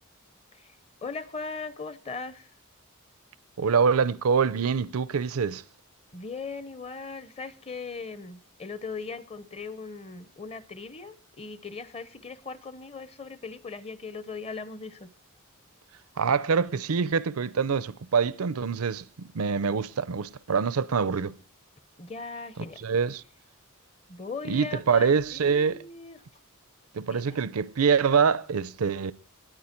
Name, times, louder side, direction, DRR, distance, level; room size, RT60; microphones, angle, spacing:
voice 1, 1.0-2.5 6.1-15.1 22.0-22.8 24.1-26.2 27.1-27.4, left 4 dB, 30° left, 0.7 m, -39 dB
voice 2, 3.6-5.6 16.2-21.4 22.8-23.2 24.5-25.8 26.9-29.1, right 6 dB, 90° right, 0.6 m, -25 dB
19.5 x 9.0 x 4.4 m
head